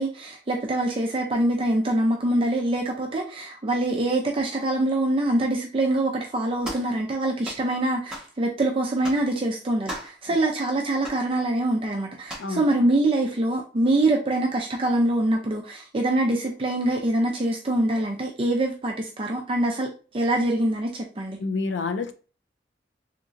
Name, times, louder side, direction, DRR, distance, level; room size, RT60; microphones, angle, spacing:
voice 1, 0.0-21.4, right 1 dB, 30° right, 0.5 m, -24 dB
sound 1, 6.6-6.9 7.4-7.7 8.1-8.3 9.0-9.3 9.9-10.2 11.0-11.2 12.3-12.5, equal, 5° right, 1.2 m, -36 dB
voice 2, 21.4-22.1, left 4 dB, 85° left, 0.5 m, -28 dB
3.6 x 2.9 x 2.5 m
head